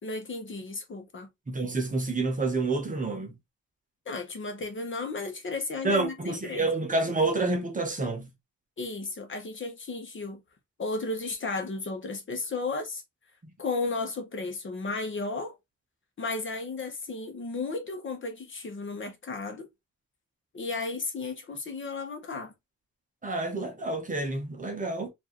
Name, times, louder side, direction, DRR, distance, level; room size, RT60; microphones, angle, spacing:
voice 1, 0.0-1.3 4.1-6.7 8.8-10.4 10.8-13.0 13.6-15.6 16.2-19.7 20.5-22.5, left 3 dB, 35° left, 0.9 m, -34 dB
voice 2, 1.5-3.3 5.8-8.3 23.2-25.1, right 3 dB, 25° right, 0.8 m, -28 dB
4.5 x 2.6 x 2.9 m
wide cardioid pair, 180°, 34 cm